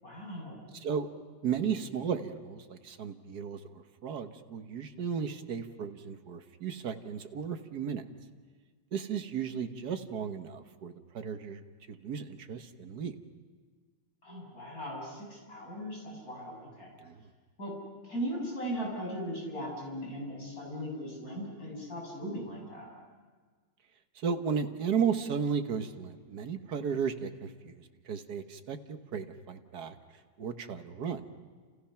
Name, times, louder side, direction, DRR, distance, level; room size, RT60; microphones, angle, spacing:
voice 1, 0.0-0.7 14.2-16.9 17.6-17.7 18.0-22.9, equal, 40° left, -2 dB, 8.1 m, -38 dB
voice 2, 1.4-8.0 8.9-11.6 11.9-13.2 17.0-17.3 24.2-30.0 30.4-31.2, right 6 dB, 50° right, 7 dB, 1.7 m, -34 dB
30.0 x 29.0 x 5.8 m, 1.5 s
omnidirectional pair, 2.3 m